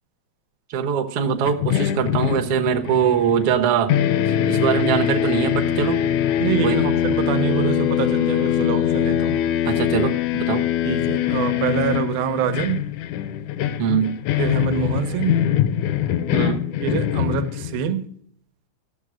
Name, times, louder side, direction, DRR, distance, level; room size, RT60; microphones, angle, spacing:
voice 1, 0.7-3.9 4.3-6.0 6.6-6.9 9.6-10.7 13.8-14.2 16.3-16.6, right 8 dB, 65° right, 1.4 m, -22 dB
sound 1, 1.4-3.6 3.9-17.9, left 11 dB, 80° left, 1.8 m, -23 dB
voice 2, 6.4-9.5 10.8-12.9 14.4-15.5 16.8-18.2, right 7 dB, 85° right, 2.6 m, -25 dB
13.5 x 7.4 x 6.1 m
omnidirectional pair, 4.1 m